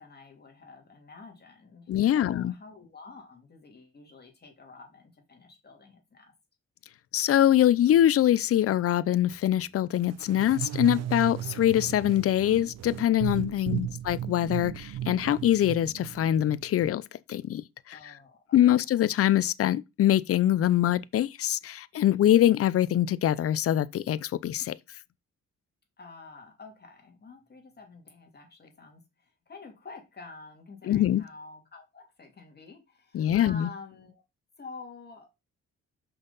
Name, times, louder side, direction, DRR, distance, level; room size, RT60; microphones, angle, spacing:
voice 1, 0.0-6.3 13.6-14.0 17.9-18.6 26.0-34.2 34.6-35.4, left 4 dB, 35° left, 2.7 m, -48 dB
voice 2, 1.9-2.5 7.1-17.0 17.3-18.0 18.5-24.7 30.8-31.2 33.1-33.7, left 12 dB, 50° left, 0.6 m, -24 dB
sound 1, 10.1-16.9, right 12 dB, 60° right, 0.6 m, -35 dB
5.8 x 5.4 x 4.1 m
cardioid pair, 90°, 30 cm